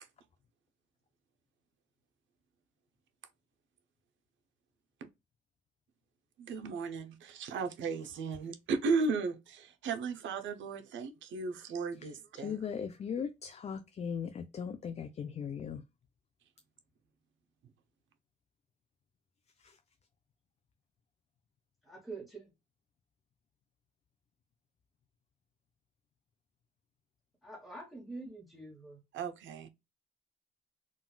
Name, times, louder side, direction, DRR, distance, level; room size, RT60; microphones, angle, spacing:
voice 1, 6.4-12.6 29.1-29.7, right 4 dB, 75° right, 0.6 m, -35 dB
voice 2, 12.0-15.8 19.6-19.8, left 7 dB, 35° left, 0.4 m, -39 dB
voice 3, 21.8-22.5 27.4-29.0, right 2 dB, ahead, 1.1 m, -46 dB
3.8 x 2.3 x 2.2 m
cardioid pair, 90°, 20 cm